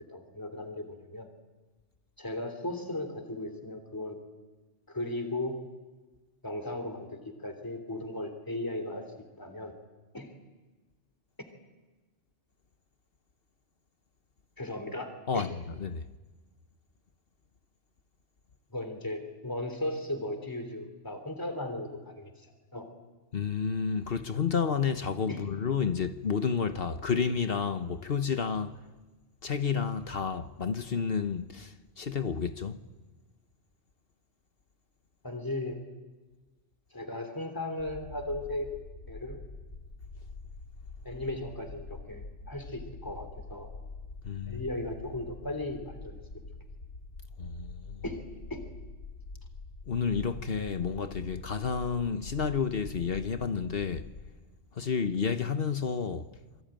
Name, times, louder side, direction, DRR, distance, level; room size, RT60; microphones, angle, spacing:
voice 1, 0.1-1.3 2.2-4.2 4.9-5.6 6.4-9.0 9.4-9.7 10.1-10.3 14.6-15.5 18.7-22.3 22.7-22.8 25.3-25.4 35.2-35.8 36.9-38.7 39.1-39.4 41.0-43.7 44.5-46.4 48.0-48.2 48.5-48.6, left 1 dB, 15° left, 3.4 m, -36 dB
voice 2, 23.3-28.7 29.4-32.8 44.2-44.6 47.4-48.0 49.9-54.1 54.7-56.3, left 6 dB, 55° left, 1.2 m, -30 dB
sound 1, 37.8-54.3, left 3 dB, 90° left, 2.2 m, -45 dB
27.5 x 23.0 x 9.0 m
omnidirectional pair, 1.2 m